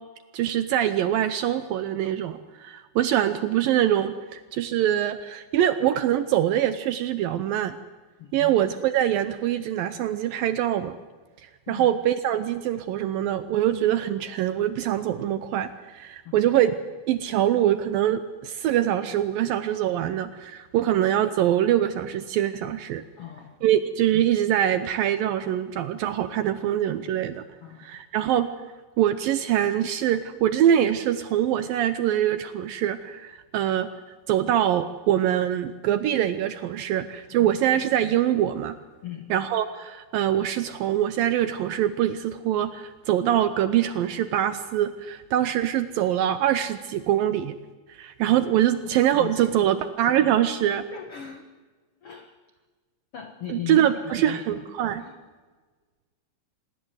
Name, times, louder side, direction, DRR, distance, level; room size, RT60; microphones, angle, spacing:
voice 1, 0.3-7.8 8.3-11.0 11.4-16.7 17.1-23.0 23.6-27.4 27.8-28.5 29.0-33.9 34.3-38.8 39.3-47.6 47.9-50.9 53.5-55.1, right 11 dB, 75° right, 12 dB, 2.2 m, -24 dB
voice 2, 8.2-8.6 11.7-11.9 16.2-16.4 20.8-20.9 23.2-23.8 27.6-28.0 37.3-37.5 39.0-39.3 48.3-48.4 48.8-48.9 49.2-49.6 50.9-51.4 52.0-52.4 53.1-54.7 54.9-55.1, left 9 dB, 85° left, 7 dB, 1.2 m, -39 dB
26.0 x 21.0 x 8.1 m, 1.4 s
omnidirectional pair, 4.9 m